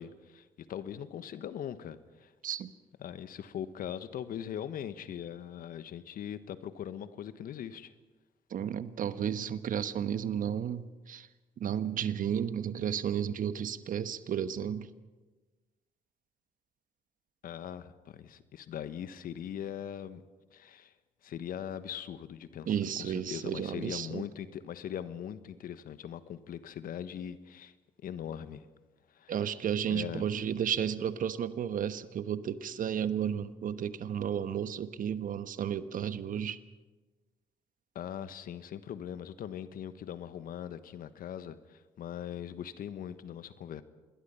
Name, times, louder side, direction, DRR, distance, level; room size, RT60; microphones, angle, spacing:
voice 1, 0.0-2.3 3.0-7.9 17.4-20.2 20.5-20.9 21.2-22.7 23.0-27.7 28.0-28.6 29.1-29.4 29.9-30.3 37.9-43.8, left 9 dB, 70° left, 13 dB, 1.3 m, -41 dB
voice 2, 8.5-11.3 11.6-14.9 22.7-24.2 29.3-36.6, right 8 dB, 60° right, 13 dB, 1.2 m, -33 dB
26.5 x 21.5 x 5.7 m, 1.2 s
hypercardioid pair, 50°, 15 cm